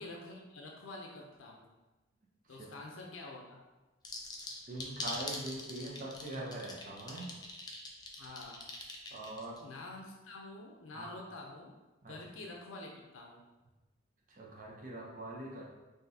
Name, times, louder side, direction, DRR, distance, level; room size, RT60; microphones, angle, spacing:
voice 1, 0.0-1.7 2.5-3.6 8.2-8.6 9.6-11.8 12.1-13.4, left 2 dB, 75° left, 0 dB, 0.6 m, -47 dB
sound 1, 4.0-9.6, left 2 dB, 20° left, 0.4 m, -42 dB
voice 2, 4.7-7.3 9.1-9.6 10.9-11.1 12.0-12.1 14.4-15.7, right 1 dB, 40° right, -3 dB, 0.7 m, -42 dB
5.8 x 2.7 x 2.7 m, 1.1 s
head